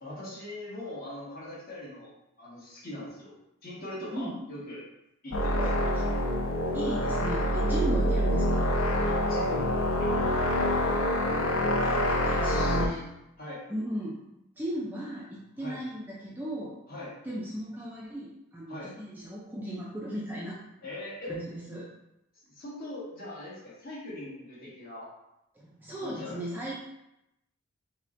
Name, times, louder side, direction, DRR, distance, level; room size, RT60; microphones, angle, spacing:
voice 1, 0.0-2.1 2.4-3.3 3.6-4.8 5.2-5.9 9.0-10.5 12.3-12.8 13.4-13.6 15.6-15.8 16.9-17.1 18.7-18.9 20.8-21.4 22.5-25.1 26.0-26.4, left 1 dB, 45° left, -7 dB, 1.3 m, -41 dB
sound 1, 5.3-12.9, equal, 80° left, 0.5 m, -26 dB
voice 2, 6.7-8.7 11.3-13.1 13.7-14.3 14.6-16.8 17.2-20.6 21.3-21.9 25.5-26.8, right 1 dB, 10° right, -5 dB, 0.4 m, -36 dB
5.6 x 2.1 x 2.5 m, 0.87 s
head